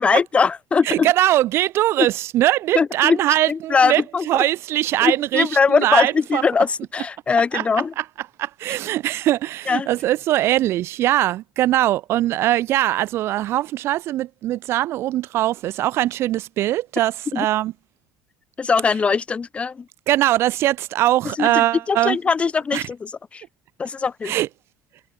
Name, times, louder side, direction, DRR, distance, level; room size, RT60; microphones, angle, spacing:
voice 1, 0.0-1.1 2.7-3.2 3.5-4.4 5.0-7.9 9.7-9.9 17.3-17.4 18.6-19.8 21.4-23.4 23.8-24.3, left 5 dB, 25° left, 1.6 m, -21 dB
voice 2, 0.8-6.4 7.5-7.6 8.0-8.1 8.4-17.7 20.1-22.2 22.7-22.8 24.2-24.5, right 14 dB, 55° right, 3.1 m, -21 dB
cardioid pair, 125°, 5 cm